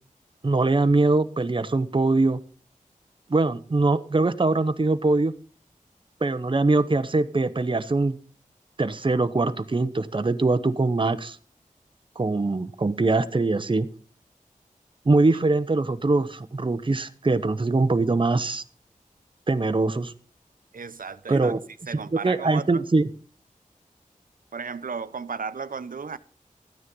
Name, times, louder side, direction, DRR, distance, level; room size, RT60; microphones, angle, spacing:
voice 1, 0.4-2.4 3.3-5.3 6.2-8.1 8.8-11.4 12.2-13.9 15.1-18.6 19.5-20.1 21.3-21.6 21.9-23.1, right 3 dB, 35° right, 0.8 m, -22 dB
voice 2, 20.7-21.5 21.9-22.8 24.5-26.2, right 5 dB, 80° right, 0.8 m, -34 dB
13.0 x 9.6 x 5.3 m
wide cardioid pair, 70°, 14 cm